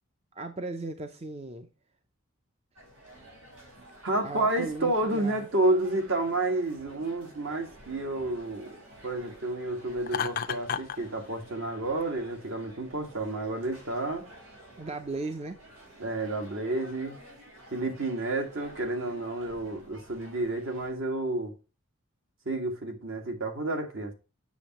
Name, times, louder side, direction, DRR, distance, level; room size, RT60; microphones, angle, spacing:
voice 1, 0.3-1.7 3.8-3.9 4.2-5.5 14.8-15.6, right 3 dB, 30° right, 0.5 m, -36 dB
sound 1, 2.8-20.9, right 1 dB, 90° right, 4.6 m, -51 dB
voice 2, 4.0-8.7 9.0-14.3 16.0-17.2 17.7-21.5 22.5-24.1, right 2 dB, 70° right, 1.7 m, -30 dB
Laughter, 10.1-11.0, left 7 dB, 45° left, 0.4 m, -31 dB
8.3 x 6.3 x 2.9 m
head